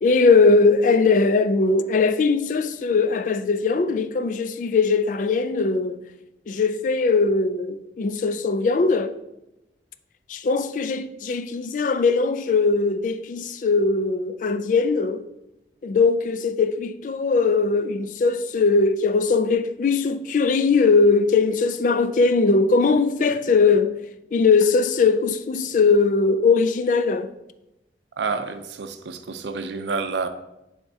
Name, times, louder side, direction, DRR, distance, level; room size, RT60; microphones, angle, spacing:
voice 1, 0.0-6.0 6.5-9.2 10.3-15.2 15.8-24.0 24.3-27.3, left 4 dB, 45° left, 0.3 m, -20 dB
voice 2, 28.1-30.3, right 4 dB, 85° right, 0.5 m, -29 dB
9.8 x 3.5 x 2.7 m
head